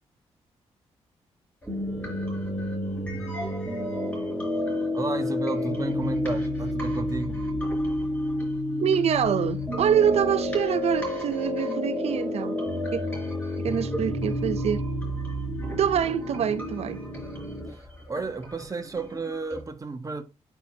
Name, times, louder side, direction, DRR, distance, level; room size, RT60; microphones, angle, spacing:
sound 1, 1.6-19.6, equal, 15° left, 4.6 m, -43 dB
sound 2, 1.7-17.7, left 1 dB, 5° right, 3.9 m, -30 dB
voice 1, 4.9-7.5 17.7-20.2, right 3 dB, 30° right, 1.3 m, -33 dB
voice 2, 8.8-12.6 12.9-13.0 13.6-14.8 15.8-17.0, right 8 dB, 70° right, 0.6 m, -25 dB
9.2 x 4.7 x 2.9 m
cardioid pair, 75°, 11 cm